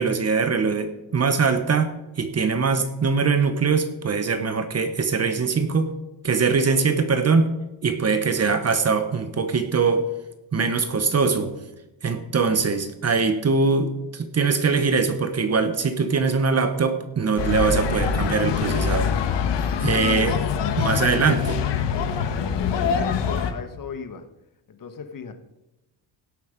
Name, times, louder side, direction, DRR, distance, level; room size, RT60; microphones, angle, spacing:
voice 1, 0.0-5.9 6.2-7.5 7.8-10.0 10.5-11.5 12.0-19.1 19.8-20.4 20.8-21.6, right 5 dB, 30° right, 9 dB, 1.2 m, -22 dB
sound 1, 17.4-23.5, left 7 dB, 60° left, 1.5 m, -24 dB
voice 2, 20.1-20.4 22.7-24.3 24.7-25.3, left 6 dB, 45° left, 8 dB, 1.5 m, -36 dB
17.0 x 7.8 x 5.2 m, 0.98 s
cardioid pair, 125°, 47 cm